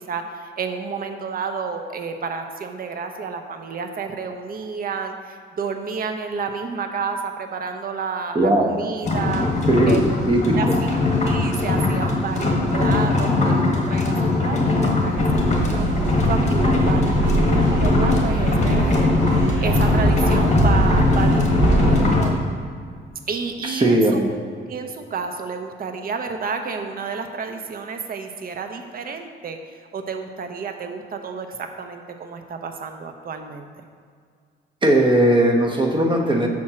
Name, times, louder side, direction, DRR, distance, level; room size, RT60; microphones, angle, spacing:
voice 1, 0.0-9.5 9.9-10.0 10.6-14.2 14.4-15.9 16.3-19.1 19.4-22.4 23.3-24.4 24.7-29.6 29.9-33.7, right 5 dB, 50° right, 6 dB, 0.8 m, -30 dB
voice 2, 8.3-8.7 9.4-10.8 23.7-24.3 34.8-36.5, right 1 dB, 25° right, 1 dB, 1.0 m, -18 dB
sound 1, 9.0-22.3, left 3 dB, 35° left, 1.5 m, -20 dB
sound 2, 15.1-22.2, right 3 dB, 70° right, 1.1 m, -23 dB
6.0 x 4.3 x 6.1 m, 2.1 s
cardioid pair, 90°, 20 cm